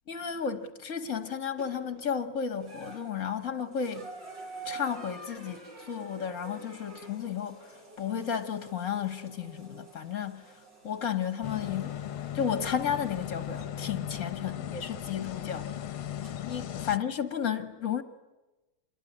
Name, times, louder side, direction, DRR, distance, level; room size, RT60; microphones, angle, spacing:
voice 1, 0.1-4.1 4.6-7.7 8.0-10.5 10.8-12.0 12.3-15.7 16.4-18.0, left 7 dB, 45° left, 1.5 m, -33 dB
sound 1, 1.6-2.0 2.5-13.7 14.9-15.0 16.2-16.3, right 3 dB, 60° right, 7.3 m, -48 dB
sound 2, 11.4-17.0, left 10 dB, 90° left, 2.0 m, -37 dB
27.5 x 22.0 x 9.8 m
omnidirectional pair, 2.2 m